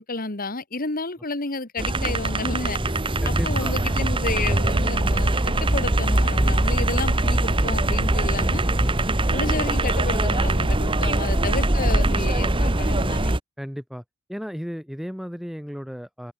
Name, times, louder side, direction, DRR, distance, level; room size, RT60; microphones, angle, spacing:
voice 1, 0.0-2.8 3.3-8.6 9.3-13.4, left 3 dB, 40° left, 1.9 m, -31 dB
sound 1, 1.8-13.4, right 1 dB, 25° right, 1.3 m, -22 dB
voice 2, 3.2-3.9 6.4-6.9 8.1-8.2 8.8-9.1 11.0-11.2 13.6-14.0 14.3-16.3, equal, ahead, 2.7 m, -35 dB
head